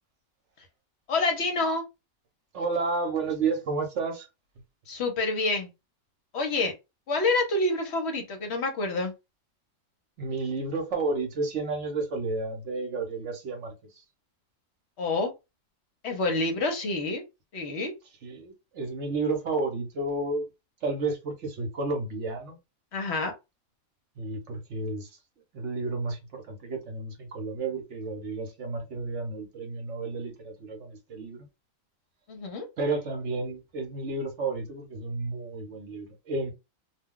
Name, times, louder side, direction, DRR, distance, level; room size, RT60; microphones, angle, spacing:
voice 1, 1.1-1.8 4.9-5.7 6.3-6.7 7.1-9.1 15.0-15.3 16.0-17.2 17.5-17.9 22.9-23.3 32.3-32.7, left 3 dB, 60° left, 0.9 m, -27 dB
voice 2, 2.5-4.3 10.2-14.0 18.2-20.5 20.8-22.6 24.2-25.1 25.5-31.5 32.8-36.5, right 3 dB, 65° right, 1.0 m, -31 dB
2.4 x 2.2 x 3.6 m
omnidirectional pair, 1.4 m